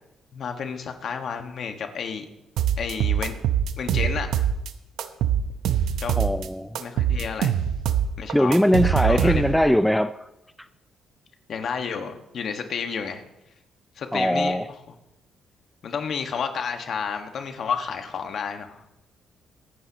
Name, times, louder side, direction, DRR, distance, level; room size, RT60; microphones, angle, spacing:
voice 1, 0.3-2.3 2.8-3.4 3.8-4.5 6.0-6.1 6.8-7.5 8.2-8.5 9.0-9.7 11.5-13.2 14.0-14.6 15.8-19.0, left 6 dB, 60° left, 1.6 m, -31 dB
sound 1, 2.6-4.7 5.0-6.5 6.8-9.7, right 9 dB, 80° right, 0.9 m, -23 dB
voice 2, 6.2-6.8 8.3-10.3 14.1-14.7, equal, ahead, 0.4 m, -21 dB
24.0 x 9.9 x 3.0 m
cardioid pair, 90°, 0 cm